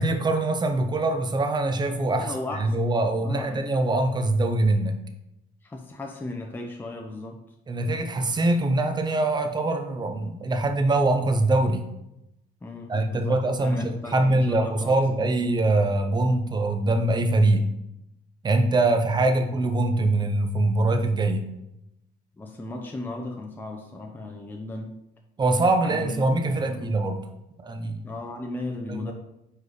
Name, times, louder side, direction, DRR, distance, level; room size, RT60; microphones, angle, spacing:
voice 1, 0.0-2.3 2.6-4.9 7.7-11.9 12.9-17.7 18.4-21.5 25.4-27.2 27.6-28.0 28.9-29.1, right 2 dB, 25° right, 6 dB, 0.8 m, -23 dB
voice 2, 2.2-2.8 3.2-3.6 5.6-7.4 9.4-9.5 12.6-15.4 19.2-19.4 22.4-24.9 25.8-26.9 28.0-29.1, left 2 dB, 10° left, 2 dB, 0.7 m, -36 dB
4.7 x 4.7 x 4.9 m, 0.86 s
cardioid pair, 110°, 17 cm